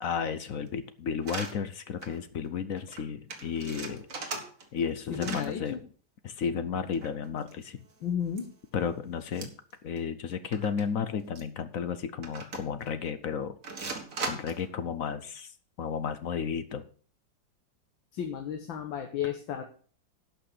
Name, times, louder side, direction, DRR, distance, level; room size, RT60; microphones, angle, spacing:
voice 1, 0.0-4.4 4.7-5.8 6.2-7.8 8.7-9.5 9.8-13.9 14.3-15.5 15.8-16.9, left 7 dB, 60° left, 11 dB, 0.9 m, -33 dB
sound 1, 1.2-1.5 2.0-2.2 2.5-2.6 2.8-3.0 3.3-4.9 5.1-5.5 6.9-7.9 8.4-8.5 9.3-9.7 10.0-10.1 10.5-10.8 11.4-11.5 12.2-12.9 13.6-14.7, right 3 dB, 45° right, 2.0 m, -38 dB
voice 2, 5.1-5.8 8.0-8.5 18.1-19.6, left 8 dB, 80° left, 4 dB, 1.9 m, -33 dB
11.5 x 6.0 x 6.6 m, 0.43 s
omnidirectional pair, 2.1 m